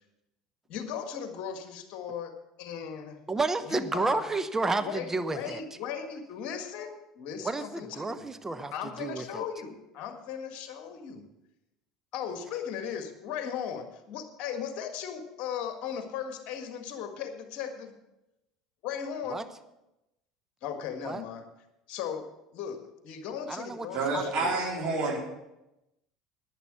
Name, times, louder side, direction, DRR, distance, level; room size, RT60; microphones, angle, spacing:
voice 1, 0.7-2.3 2.6-3.2 3.6-4.3 4.8-8.3 8.7-11.2 12.1-17.9 18.8-19.4 20.6-21.4 21.9-22.3 22.5-24.6, left 8 dB, 50° left, 6 dB, 1.7 m, -37 dB
voice 2, 3.3-5.6 7.4-8.7 9.0-9.4 19.3-19.4 21.0-21.2 23.5-23.9 24.1-24.6, right 3 dB, 15° right, 10 dB, 0.9 m, -31 dB
voice 3, 23.9-25.2, right 3 dB, 45° right, -2 dB, 3.8 m, -28 dB
11.0 x 9.6 x 6.1 m, 0.92 s
figure-of-eight pair, 65°, 3 cm